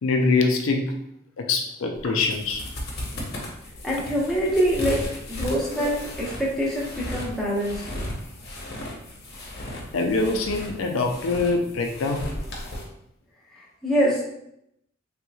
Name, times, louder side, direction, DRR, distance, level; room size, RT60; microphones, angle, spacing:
voice 1, 0.0-0.9 1.4-2.6 5.8-5.9 9.9-12.3, left 3 dB, 70° left, 2 dB, 0.4 m, -24 dB
sound 1, 1.9-12.8, left 1 dB, 50° left, 0.7 m, -35 dB
voice 2, 3.8-5.0 5.3-7.8 13.5-14.2, equal, ahead, -7 dB, 0.9 m, -25 dB
3.4 x 3.0 x 2.3 m, 0.79 s
head